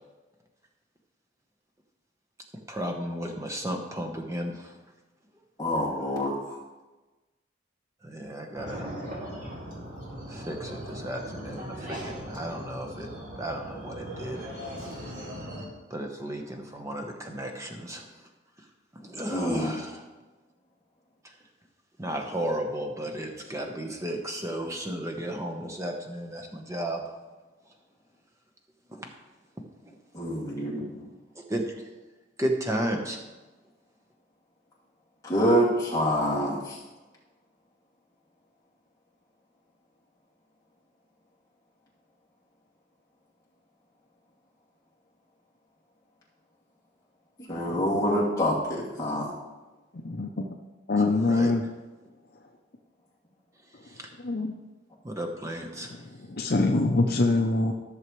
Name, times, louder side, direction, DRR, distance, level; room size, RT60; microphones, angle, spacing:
voice 1, 2.7-4.8 8.0-8.9 10.3-13.1 13.4-14.5 15.9-18.2 18.9-20.0 21.2-21.3 22.0-27.0 28.9-29.1 31.3-31.7 32.4-33.2 51.2-51.5 53.8-54.1 55.0-56.0, right 1 dB, 15° right, 3 dB, 1.0 m, -34 dB
voice 2, 5.6-6.6 19.3-19.7 30.1-31.0 35.2-36.8 47.4-49.3, equal, 15° left, -6 dB, 2.3 m, -26 dB
sound 1, 8.6-15.6, equal, 40° right, 2.1 m, -39 dB
voice 3, 49.9-50.3 50.9-51.6 54.2-54.5 55.8-55.9 56.2-57.7, left 2 dB, 50° left, 2 dB, 0.6 m, -24 dB
14.0 x 6.7 x 3.2 m, 1.2 s
head